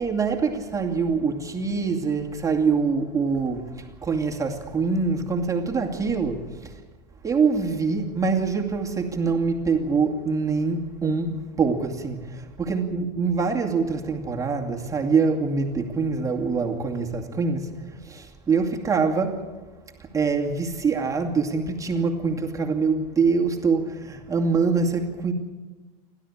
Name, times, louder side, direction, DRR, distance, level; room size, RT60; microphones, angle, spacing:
voice 1, 0.0-6.7 7.2-19.4 20.0-25.3, right 4 dB, 15° right, 2.5 m, -24 dB
29.5 x 13.0 x 8.7 m
supercardioid pair, 120°, 21 cm